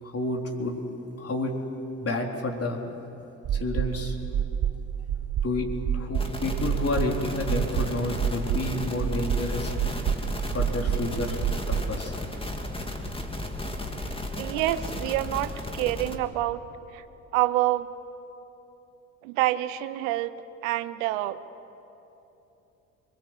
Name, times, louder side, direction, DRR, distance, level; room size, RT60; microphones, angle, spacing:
voice 1, 0.0-0.8 1.2-1.5 2.0-2.8 3.5-4.2 5.4-5.7 5.9-9.9 10.5-11.4 11.7-12.2, left 2 dB, 35° left, 1 dB, 4.0 m, -30 dB
sound 1, 3.4-11.9, right 9 dB, 45° right, 0.8 m, -29 dB
sound 2, 6.1-16.2, left 1 dB, 15° left, 2.5 m, -34 dB
voice 2, 14.4-16.6 16.9-17.0 17.3-17.9 19.2-20.3 20.6-21.4, right 15 dB, 85° right, 13 dB, 0.9 m, -27 dB
24.5 x 23.0 x 8.0 m, 3.0 s
hypercardioid pair, 60°, 38 cm